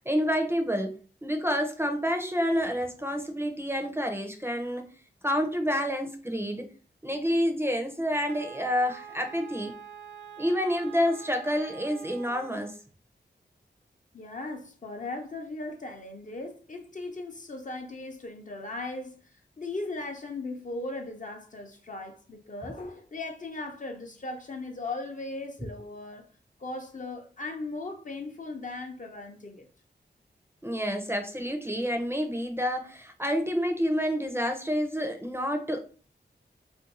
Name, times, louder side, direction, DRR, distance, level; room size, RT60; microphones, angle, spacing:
voice 1, 0.1-1.0 1.2-4.9 5.2-6.7 7.0-9.7 10.4-12.7 30.6-35.8, equal, 15° right, 0.6 m, -28 dB
Wind instrument woodwind instrument, 8.3-12.8, right 8 dB, 75° right, 0.5 m, -46 dB
voice 2, 14.1-19.1 19.6-26.2 26.6-29.7, left 2 dB, 45° left, 0.7 m, -38 dB
2.6 x 2.2 x 4.0 m
wide cardioid pair, 90°, 19 cm